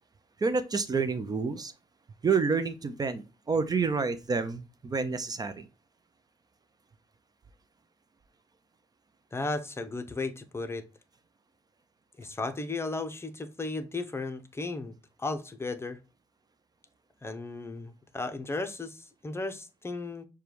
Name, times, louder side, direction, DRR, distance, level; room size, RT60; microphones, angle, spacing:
voice 1, 0.4-1.7 2.2-5.7, right 5 dB, 35° right, 0.5 m, -29 dB
voice 2, 9.3-10.8 12.2-14.9 15.2-16.0 17.2-20.3, left 3 dB, 20° left, 0.7 m, -35 dB
6.6 x 2.3 x 3.0 m
cardioid pair, 65°, 12 cm